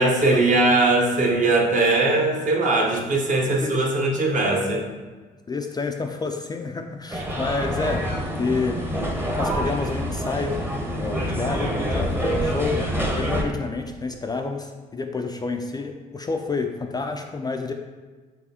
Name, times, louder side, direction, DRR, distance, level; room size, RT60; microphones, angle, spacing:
voice 1, 0.0-4.8, right 2 dB, 45° right, 0 dB, 0.9 m, -20 dB
voice 2, 5.5-8.8 9.4-12.8 13.1-17.7, left 4 dB, 20° left, 4 dB, 0.3 m, -29 dB
sound 1, 7.1-13.4, equal, 10° right, 0.8 m, -26 dB
4.7 x 3.3 x 2.8 m, 1.4 s
supercardioid pair, 60°, 18 cm